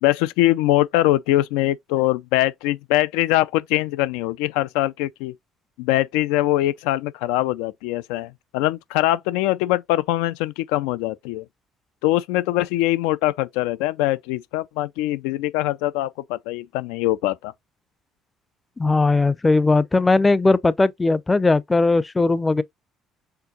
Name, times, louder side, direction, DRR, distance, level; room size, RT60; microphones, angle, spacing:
voice 1, 0.0-5.3 5.8-11.4 12.0-17.5, left 15 dB, 85° left, 0.3 m, -22 dB
voice 2, 18.8-22.6, left 3 dB, 20° left, 0.5 m, -18 dB
4.5 x 3.7 x 2.6 m
supercardioid pair, 75°, 0 cm